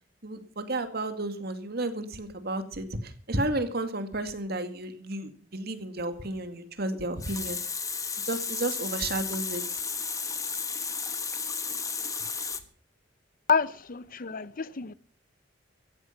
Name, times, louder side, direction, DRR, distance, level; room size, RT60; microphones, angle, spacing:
voice 1, 0.2-7.6 8.3-9.6, right 2 dB, 60° right, 2.3 m, -32 dB
Water tap faucet, 6.9-12.6, left 5 dB, 20° left, 1.4 m, -33 dB
voice 2, 13.5-14.9, left 6 dB, 50° left, 0.7 m, -28 dB
16.0 x 14.5 x 5.9 m
head